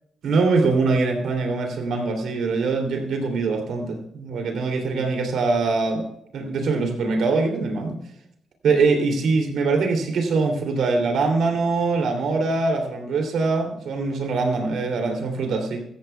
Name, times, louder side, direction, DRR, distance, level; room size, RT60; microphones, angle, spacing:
voice 1, 0.2-6.1 6.3-8.0 8.6-15.9, right 3 dB, 75° right, 3 dB, 2.9 m, -23 dB
15.5 x 14.5 x 2.3 m, 0.76 s
cardioid pair, 60°, 0 cm